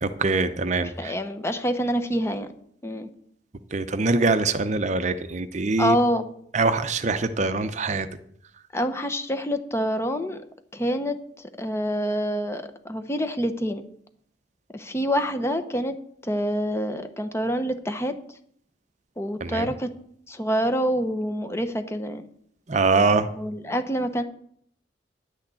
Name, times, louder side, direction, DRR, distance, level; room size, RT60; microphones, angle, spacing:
voice 1, 0.0-1.1 3.7-6.0 6.5-8.1 19.4-19.7 22.7-23.3, right 3 dB, 40° right, 10 dB, 0.6 m, -23 dB
voice 2, 1.0-2.5 2.8-3.1 5.8-6.3 8.7-10.4 10.7-11.2 11.6-13.8 14.7-16.0 16.2-18.2 19.2-19.9 20.3-22.3 23.4-24.2, equal, 15° left, 8 dB, 0.9 m, -26 dB
10.5 x 6.5 x 8.4 m, 0.66 s
head